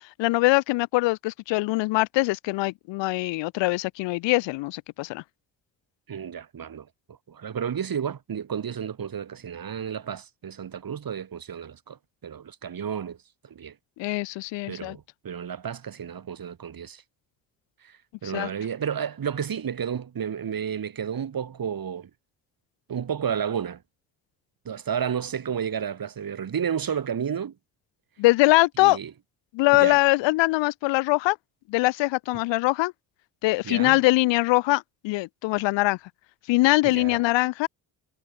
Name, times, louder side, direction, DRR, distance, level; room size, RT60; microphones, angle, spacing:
voice 1, 0.0-5.2 14.0-15.0 18.3-18.5 28.2-29.0 29.5-31.4 31.7-32.9 33.4-36.0 36.5-37.7, left 21 dB, 80° left, 2.2 m, -22 dB
voice 2, 6.1-13.2 13.4-13.7 14.7-17.0 17.8-22.1 22.9-23.8 24.6-27.5 28.8-29.1 29.7-30.0 33.6-34.0 36.8-37.2, right 8 dB, 50° right, 7.9 m, -32 dB
supercardioid pair, 60°, 43 cm